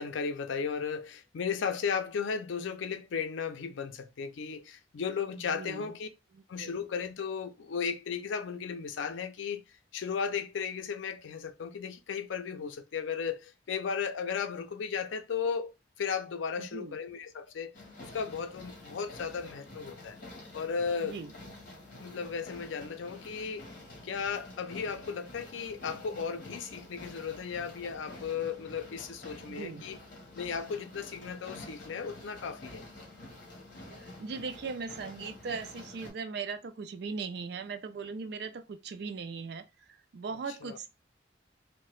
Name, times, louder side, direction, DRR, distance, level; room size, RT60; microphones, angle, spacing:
voice 1, 0.0-6.1 6.5-9.6 9.9-17.7 18.0-20.2 20.5-21.2 22.0-23.7 24.0-30.0 30.4-32.9 40.6-40.8, left 6 dB, 85° left, 0.4 m, -35 dB
voice 2, 5.4-5.9 6.3-6.7 16.6-17.0 21.0-21.3 29.4-29.8 34.0-40.9, right 5 dB, 60° right, 0.4 m, -39 dB
sound 1, 17.7-36.1, left 2 dB, 45° left, 1.0 m, -48 dB
2.7 x 2.1 x 3.0 m
head